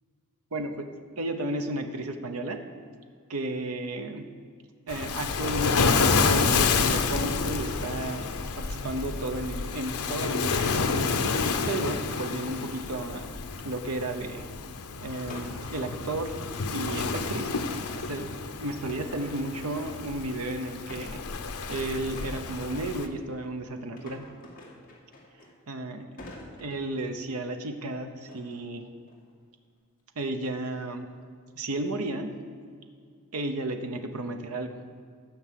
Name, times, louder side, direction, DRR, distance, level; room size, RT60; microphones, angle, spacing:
voice 1, 0.5-0.9 1.2-2.6 3.3-4.2 4.9-8.2 8.6-13.4 13.6-14.4 15.0-16.3 16.7-17.5 18.1-21.2 21.7-24.2 25.7-26.1 26.6-28.9 30.2-31.1 31.6-32.4 33.3-34.8, right 2 dB, 75° right, 6 dB, 0.9 m, -33 dB
Waves surf, 4.9-23.1, left 4 dB, 85° left, 0.8 m, -29 dB
sound 1, 14.4-14.6 15.3-16.4 17.1-18.3 18.9-20.5 20.7-21.9 22.2-23.6 24.0-25.8 26.2-27.2 28.3-28.6 29.1-29.4, left 2 dB, 40° left, 2.6 m, -48 dB
13.5 x 6.0 x 7.7 m, 2.2 s
head